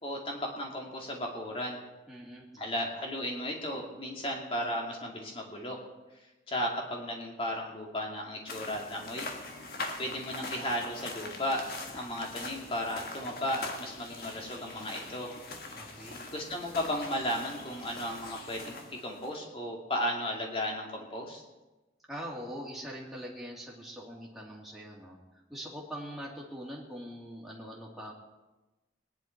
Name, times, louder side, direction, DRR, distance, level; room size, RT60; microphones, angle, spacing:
voice 1, 0.0-1.8 2.6-5.8 6.5-9.3 10.0-11.6 11.9-15.3 16.0-21.4, equal, 30° left, 0 dB, 2.4 m, -35 dB
voice 2, 2.1-2.9 15.7-16.2 22.1-25.2 25.5-28.1, equal, ahead, -5 dB, 2.6 m, -43 dB
sound 1, 8.5-19.4, left 2 dB, 55° left, 1.6 m, -42 dB
20.0 x 10.5 x 4.6 m, 1.1 s
head